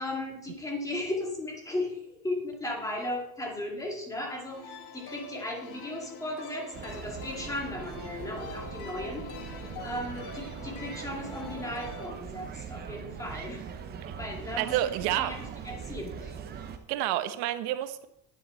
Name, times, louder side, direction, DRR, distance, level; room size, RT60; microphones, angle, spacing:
voice 1, 0.0-9.3 9.8-13.7 14.2-16.4, left 1 dB, 10° left, 0 dB, 2.0 m, -36 dB
sound 1, 4.5-12.1, left 4 dB, 55° left, 1.5 m, -44 dB
sound 2, 6.7-16.8, right 7 dB, 25° right, 0.7 m, -41 dB
sound 3, 12.2-12.9 13.2-13.8 14.3-14.8 15.3-15.8 16.4-16.8, right 11 dB, 60° right, 2.4 m, -52 dB
voice 2, 14.6-15.3 16.9-18.1, right 13 dB, 90° right, 11 dB, 1.0 m, -29 dB
10.5 x 9.6 x 4.3 m, 0.82 s
cardioid pair, 180°, 37 cm